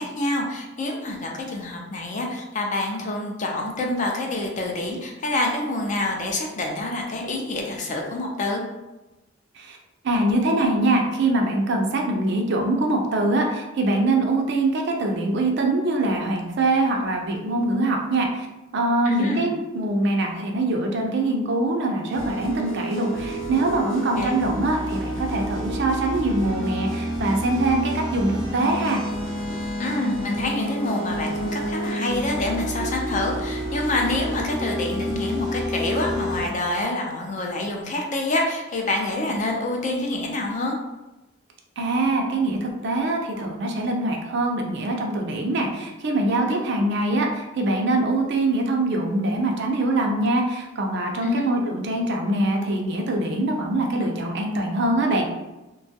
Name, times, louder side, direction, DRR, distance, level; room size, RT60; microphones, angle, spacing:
voice 1, 0.0-8.6 19.0-19.5 24.2-24.4 29.8-40.8 46.5-46.6 51.2-51.5, left 2 dB, 35° left, 1 dB, 0.4 m, -27 dB
voice 2, 10.0-18.5 18.7-29.0 41.8-55.3, right 2 dB, 55° right, 1 dB, 0.5 m, -23 dB
sound 1, 22.1-36.5, equal, 80° right, 0.8 m, -29 dB
2.9 x 2.3 x 2.7 m, 1.0 s
head